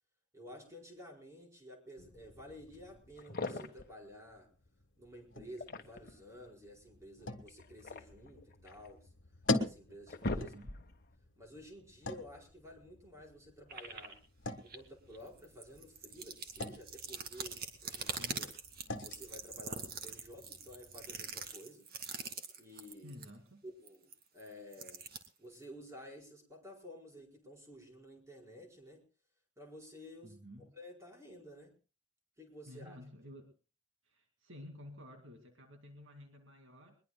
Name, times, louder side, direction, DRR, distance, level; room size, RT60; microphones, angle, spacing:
voice 1, 0.3-4.5 5.0-9.1 9.5-10.5 11.4-14.2 14.6-18.5 19.0-21.9 22.6-23.2 23.6-25.1 25.4-29.0 29.6-31.7 32.4-33.0, equal, 15° right, 0 dB, 4.8 m, -52 dB
sound 1, 2.0-21.5, left 2 dB, 70° left, 1.4 m, -45 dB
sound 2, 3.2-3.9 5.4-6.2 7.5-8.9 9.5-9.6 9.9-11.0, left 2 dB, 50° left, 1.3 m, -41 dB
voice 2, 10.3-10.7 18.1-18.4 23.0-23.6 30.2-30.7 32.7-33.5 34.0-37.0, left 1 dB, 75° right, 3 dB, 2.3 m, -52 dB
sound 3, 13.7-14.1 14.7-14.8 15.1-23.3 23.9-25.3, right 5 dB, 50° right, 2.2 m, -43 dB
22.0 x 21.5 x 2.2 m, 0.34 s
head